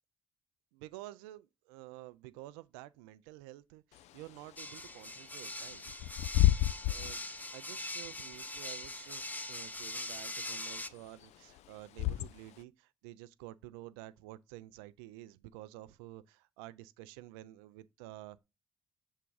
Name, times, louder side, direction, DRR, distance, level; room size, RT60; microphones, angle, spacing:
voice 1, 0.7-5.8 6.9-7.2 7.5-18.4, right 16 dB, 85° right, 0.4 m, -50 dB
Bird / Wind, 3.9-12.6, left 16 dB, 65° left, 0.4 m, -34 dB
sound 1, 4.6-10.9, left 1 dB, 15° left, 0.7 m, -42 dB
6.7 x 3.6 x 4.7 m
hypercardioid pair, 50°, 12 cm